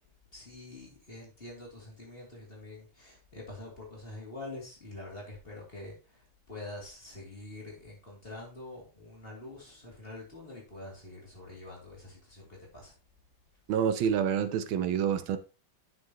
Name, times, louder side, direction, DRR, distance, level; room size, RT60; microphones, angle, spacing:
voice 1, 0.3-13.0, left 2 dB, 25° left, 3.0 m, -46 dB
voice 2, 13.7-15.4, right 8 dB, 75° right, 1.5 m, -27 dB
9.7 x 6.1 x 2.9 m
omnidirectional pair, 2.3 m